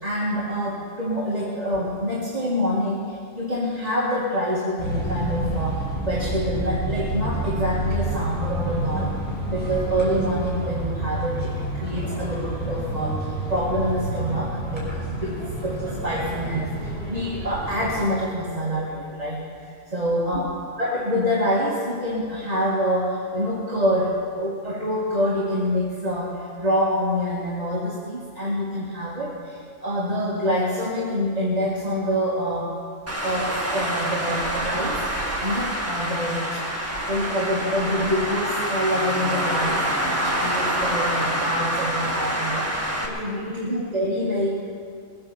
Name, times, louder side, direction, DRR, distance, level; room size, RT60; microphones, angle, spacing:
voice 1, 0.0-9.1 9.5-19.4 19.9-20.5 20.8-32.7 33.2-35.1 35.4-36.6 37.1-44.5, equal, 30° right, -6 dB, 2.1 m, -26 dB
sound 1, 4.8-18.0, right 1 dB, 5° left, 5.4 m, -29 dB
Traffic noise roadway noise, 33.1-43.1, right 1 dB, 10° right, 1.8 m, -26 dB
21.0 x 8.8 x 7.1 m, 2.3 s
omnidirectional pair, 1.4 m